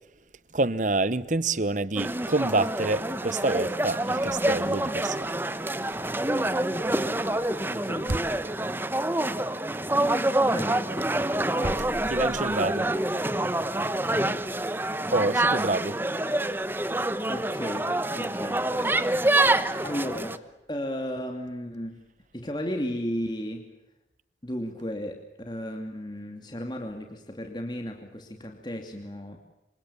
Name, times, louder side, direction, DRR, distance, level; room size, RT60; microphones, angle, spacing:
voice 1, 0.5-5.3 12.1-12.9 15.1-16.0, right 2 dB, 45° right, 1.1 m, -27 dB
sound 1, 2.0-20.4, right 1 dB, 10° right, 1.0 m, -27 dB
voice 2, 7.2-8.1 10.5-10.9 11.6-11.9 17.3-19.0 19.8-22.0 22.3-23.7 24.4-29.4, equal, 25° left, 2.6 m, -35 dB
27.5 x 26.0 x 7.2 m
head